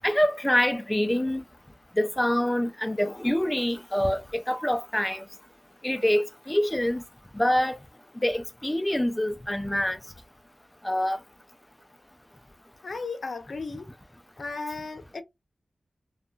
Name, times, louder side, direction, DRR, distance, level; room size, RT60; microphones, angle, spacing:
voice 1, 0.0-1.4 2.0-5.2 5.8-7.0 7.3-7.8 8.2-10.0 10.8-11.2, left 1 dB, 15° left, 0.4 m, -25 dB
voice 2, 12.8-13.9 14.4-15.2, left 3 dB, 70° left, 0.6 m, -35 dB
2.6 x 2.3 x 2.3 m
cardioid pair, 45°, 0 cm